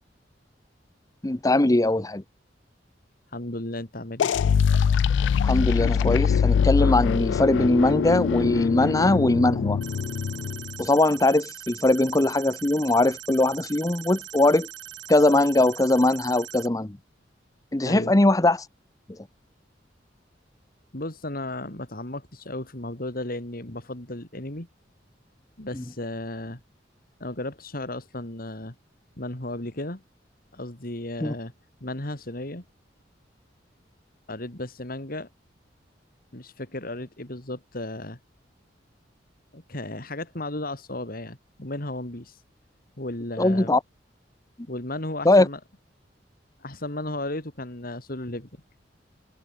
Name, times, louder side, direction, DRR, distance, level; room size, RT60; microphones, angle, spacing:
voice 1, 1.2-2.2 5.4-9.8 10.8-14.7 15.1-17.0 17.7-18.6 25.7-25.8 31.2-31.3 43.4-43.8 45.2-45.5, left 2 dB, 20° left, 0.8 m, -21 dB
voice 2, 3.3-4.3 17.9-18.1 20.9-24.7 25.6-26.6 27.2-28.8 29.2-30.0 30.5-31.5 31.8-32.6 34.3-35.3 36.3-38.2 39.5-42.4 43.0-43.7 44.7-45.6 46.6-48.5, left 1 dB, 55° left, 3.4 m, -34 dB
sound 1, 4.2-10.8, left 7 dB, 80° left, 0.3 m, -23 dB
sound 2, 9.8-16.7, right 11 dB, 80° right, 2.7 m, -41 dB
head